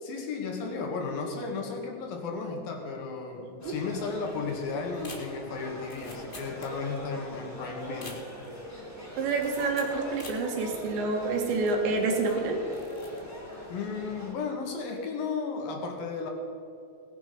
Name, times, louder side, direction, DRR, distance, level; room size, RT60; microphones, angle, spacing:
voice 1, 0.0-8.3 13.7-16.3, left 4 dB, 60° left, 2 dB, 3.4 m, -34 dB
sound 1, 3.6-14.3, equal, 5° left, 3.4 m, -42 dB
sound 2, 4.9-7.1 7.4-7.5 7.9-8.6 9.4-10.5 10.9-11.0 11.6-12.4 12.6-13.2 13.5-13.8, left 2 dB, 40° left, 0.7 m, -47 dB
voice 2, 9.2-12.6, right 3 dB, 80° right, 2 dB, 4.3 m, -28 dB
19.0 x 11.0 x 5.3 m, 2.8 s
omnidirectional pair, 5.2 m